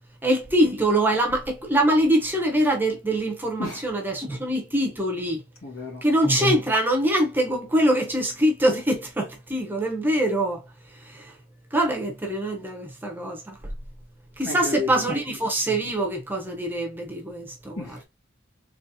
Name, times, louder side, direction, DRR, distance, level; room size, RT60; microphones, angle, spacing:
voice 1, 0.2-5.4 6.0-10.6 11.0-11.3 11.7-13.5 14.4-18.0, right 1 dB, 10° right, 0.7 m, -24 dB
voice 2, 5.6-6.0 14.4-15.0 17.8-18.0, left 4 dB, 85° left, 2.0 m, -32 dB
4.1 x 3.0 x 2.7 m
head